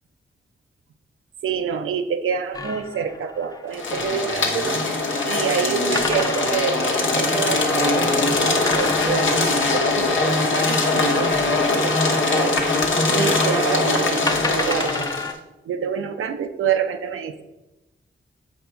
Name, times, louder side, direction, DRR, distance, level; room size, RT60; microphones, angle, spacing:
voice 1, 1.4-4.8 5.2-12.6 13.1-15.1 15.7-17.4, right 7 dB, 80° right, 8 dB, 0.6 m, -27 dB
sound 1, 2.5-4.2 5.9-7.4 8.7-12.3 13.4-13.5 14.3-15.3, left 3 dB, 20° left, 0.6 m, -32 dB
sound 2, 3.7-15.3, left 2 dB, 70° left, 1.0 m, -21 dB
7.1 x 2.6 x 5.6 m, 0.98 s
cardioid pair, 50°, 21 cm